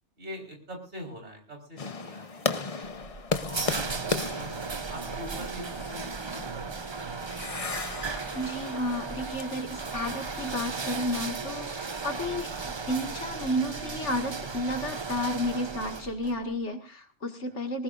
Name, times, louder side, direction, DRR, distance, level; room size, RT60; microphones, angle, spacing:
voice 1, 0.2-3.8 4.2-7.1, left 1 dB, 65° right, 1 dB, 4.9 m, -44 dB
sound 1, 1.8-10.9, left 4 dB, 35° left, 0.8 m, -36 dB
sound 2, 2.8-16.4, right 4 dB, 30° right, 0.7 m, -36 dB
voice 2, 8.3-17.8, left 1 dB, 75° left, 4 dB, 2.4 m, -32 dB
19.5 x 19.5 x 2.6 m, 0.32 s
omnidirectional pair, 1.2 m